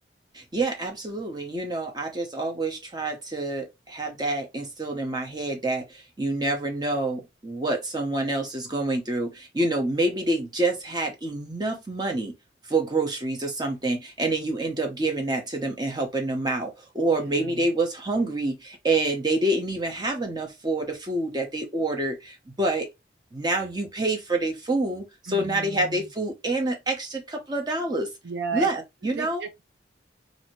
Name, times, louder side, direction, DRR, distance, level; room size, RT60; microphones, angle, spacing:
voice 1, 0.3-12.3 12.7-22.9 23.3-28.1 28.5-29.4, right 2 dB, 20° right, 0.7 m, -27 dB
voice 2, 17.1-17.6 25.3-26.1 28.2-28.7 29.0-29.6, right 5 dB, 60° right, 0.6 m, -34 dB
2.7 x 2.6 x 3.0 m
head